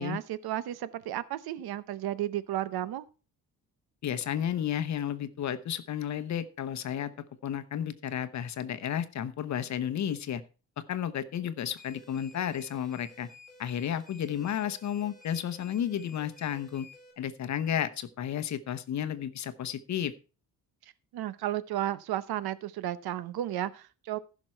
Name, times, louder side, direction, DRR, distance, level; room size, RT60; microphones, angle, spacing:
voice 1, 0.0-3.1 21.1-24.2, right 12 dB, 80° right, 0.9 m, -33 dB
voice 2, 4.0-7.1 7.4-10.4 10.9-13.3 13.6-16.9 17.2-20.1, left 9 dB, 50° left, 0.9 m, -32 dB
sound 1, 11.8-17.1, left 3 dB, ahead, 3.9 m, -54 dB
15.0 x 6.1 x 4.5 m
cardioid pair, 180°, 37 cm